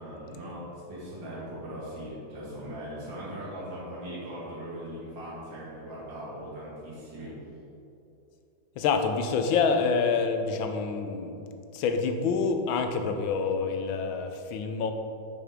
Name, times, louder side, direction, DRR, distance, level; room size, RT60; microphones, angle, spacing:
voice 1, 0.0-7.4, equal, 70° right, -8 dB, 2.5 m, -39 dB
voice 2, 8.8-11.4 11.7-14.9, left 5 dB, 90° left, 6 dB, 1.4 m, -27 dB
6.7 x 6.2 x 3.6 m, 2.7 s
omnidirectional pair, 2.1 m